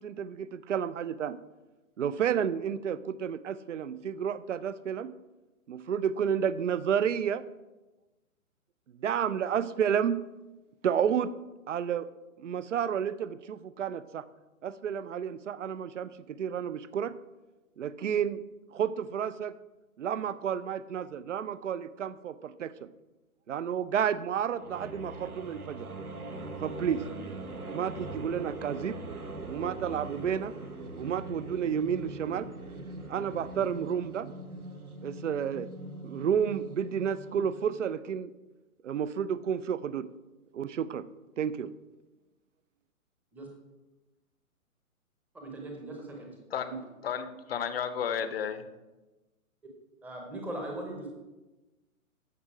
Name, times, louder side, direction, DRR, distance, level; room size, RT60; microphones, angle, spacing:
voice 1, 0.0-1.4 2.0-5.1 5.7-7.4 9.0-10.3 10.8-11.3 11.7-12.1 12.4-14.2 14.6-17.1 17.8-18.4 18.7-19.5 20.0-22.9 23.5-25.9 26.6-27.0 27.7-28.9 29.5-30.5 31.0-32.5 33.1-34.3 35.0-35.7 36.0-38.3 38.8-40.1 40.5-41.1 41.4-41.7, right 8 dB, 55° right, 0.6 m, -31 dB
sound 1, 24.6-37.8, right 2 dB, 80° right, 1.3 m, -42 dB
voice 2, 45.3-46.3 46.6-46.8 50.0-51.1, right 1 dB, 5° right, 0.8 m, -39 dB
voice 3, 46.5-48.6, left 7 dB, 45° left, 0.8 m, -33 dB
14.0 x 5.2 x 4.7 m
figure-of-eight pair, 125°, 43 cm